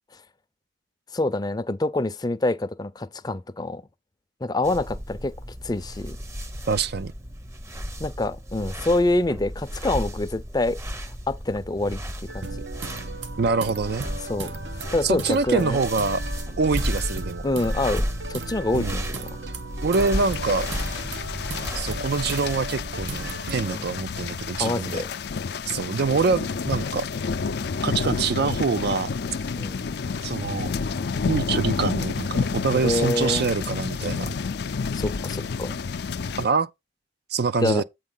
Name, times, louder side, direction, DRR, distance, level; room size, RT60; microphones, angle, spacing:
voice 1, 1.1-3.8 4.4-5.3 5.6-6.2 8.0-10.8 11.3-12.0 12.3-12.5 14.3-14.5 14.9-15.8 17.4-19.1 23.7-24.0 24.6-25.1 29.6-29.8 32.7-33.5 34.9-35.7 37.6-37.8, left 2 dB, 25° left, 0.5 m, -26 dB
sound 1, 4.6-23.3, equal, 15° right, 0.7 m, -34 dB
voice 2, 6.7-7.1 13.4-14.1 15.0-16.2 16.6-17.4 18.7-19.0 19.8-20.7 21.8-25.0 25.7-27.1 27.8-29.1 30.2-30.7 31.3-34.3 36.4-36.7 37.3-37.8, right 4 dB, 65° right, 0.5 m, -25 dB
sound 2, 12.3-23.8, right 3 dB, 85° right, 1.0 m, -36 dB
sound 3, 20.1-36.5, left 5 dB, 65° left, 0.5 m, -30 dB
8.2 x 4.6 x 3.9 m
head